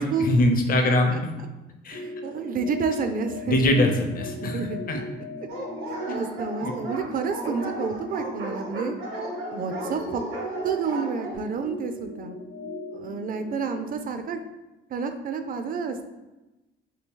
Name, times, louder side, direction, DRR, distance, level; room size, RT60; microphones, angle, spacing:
voice 1, 0.0-1.3 1.8-2.0 3.5-4.6 4.9-5.0 6.6-6.7, left 1 dB, 45° left, 4 dB, 0.6 m, -22 dB
voice 2, 0.9-1.2 1.9-3.6 4.4-4.8 5.4-5.5 5.9-9.0 9.5-10.2 10.6-12.4 12.9-14.4 14.9-16.0, right 5 dB, 45° right, 8 dB, 0.4 m, -30 dB
sound 1, 1.9-13.8, left 2 dB, 65° left, 1.0 m, -39 dB
Dog, 5.5-11.4, right 1 dB, 80° right, 1.2 m, -34 dB
2.8 x 2.6 x 3.6 m, 1.0 s
cardioid pair, 90°, 20 cm